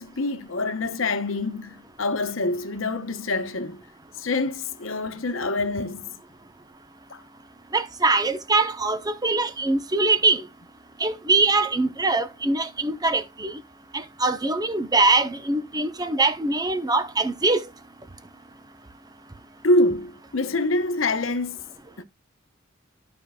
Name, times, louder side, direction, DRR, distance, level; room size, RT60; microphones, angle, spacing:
voice 1, 0.0-3.8 4.2-6.1 7.1-7.2 19.6-21.6 22.0-22.1, left 2 dB, 75° left, 1.0 m, -25 dB
voice 2, 7.7-10.4 11.0-13.5 14.2-17.7, right 3 dB, 20° right, 0.9 m, -22 dB
14.5 x 5.3 x 2.3 m
head